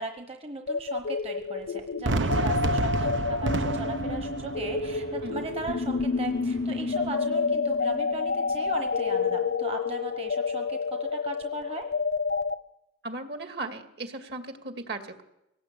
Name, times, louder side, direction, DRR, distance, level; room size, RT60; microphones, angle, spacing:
voice 1, 0.0-11.9, right 2 dB, 35° right, 5 dB, 1.2 m, -38 dB
sound 1, 0.7-12.5, left 4 dB, 65° left, 0.8 m, -29 dB
Fireworks, 2.0-7.1, right 2 dB, 90° right, 1.0 m, -31 dB
voice 2, 13.0-15.2, right 2 dB, 60° right, 6 dB, 2.4 m, -37 dB
23.0 x 18.0 x 8.5 m, 0.89 s
head